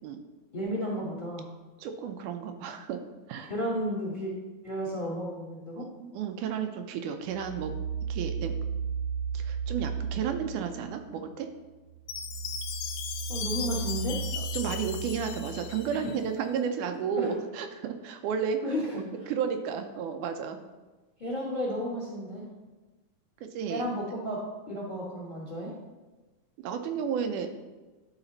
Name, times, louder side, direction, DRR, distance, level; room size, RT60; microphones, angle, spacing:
voice 1, 0.5-1.5 3.5-4.3 4.6-5.9 13.3-14.2 17.2-17.3 18.6-19.3 21.2-22.4 23.7-25.7, equal, 20° left, -5 dB, 1.2 m, -33 dB
voice 2, 1.8-3.0 3.3-3.5 5.8-7.7 8.1-8.5 9.3-11.5 14.4-18.6 18.9-20.6 23.4-23.8 26.6-27.5, right 7 dB, 85° right, 6 dB, 2.2 m, -32 dB
sound 1, 7.3-11.2 11.6-16.1, right 6 dB, 65° right, 1.3 m, -35 dB
Chime, 12.1-16.2, left 8 dB, 85° left, 2.1 m, -37 dB
11.5 x 4.1 x 4.0 m, 1.2 s
omnidirectional pair, 3.5 m